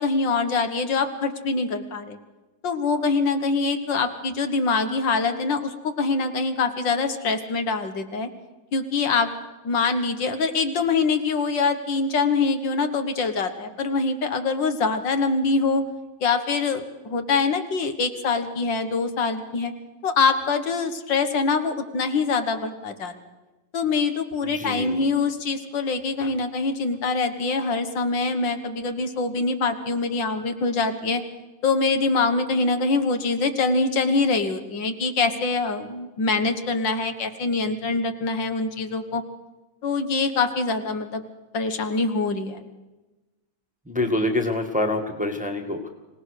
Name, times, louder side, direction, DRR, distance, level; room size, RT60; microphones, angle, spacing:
voice 1, 0.0-2.2 2.6-8.3 8.7-9.3 9.6-15.8 16.2-19.7 20.0-23.1 23.7-31.2 31.6-39.2 39.8-41.2 41.5-42.6, left 4 dB, 70° left, 7 dB, 2.0 m, -24 dB
voice 2, 24.4-25.1 43.9-45.9, left 2 dB, 5° right, 4 dB, 1.5 m, -26 dB
25.0 x 18.0 x 6.5 m, 1.1 s
omnidirectional pair, 2.1 m